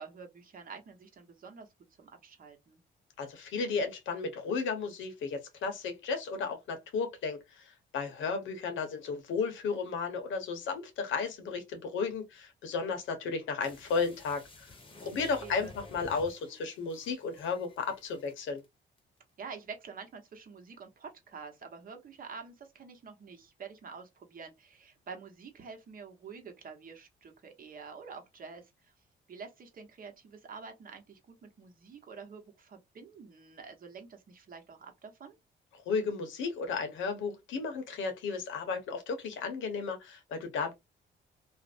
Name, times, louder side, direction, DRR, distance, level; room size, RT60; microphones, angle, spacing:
voice 1, 0.0-1.7 2.0-2.8 14.9-15.7 19.4-28.9 29.3-35.4, right 5 dB, 45° right, 0.9 m, -48 dB
voice 2, 3.2-14.7 15.0-18.6 35.9-40.7, left 5 dB, 80° left, 0.8 m, -34 dB
sound 1, 13.6-18.6 19.0-19.1, left 2 dB, 25° left, 0.8 m, -52 dB
2.5 x 2.0 x 2.4 m
cardioid pair, 90°, 20 cm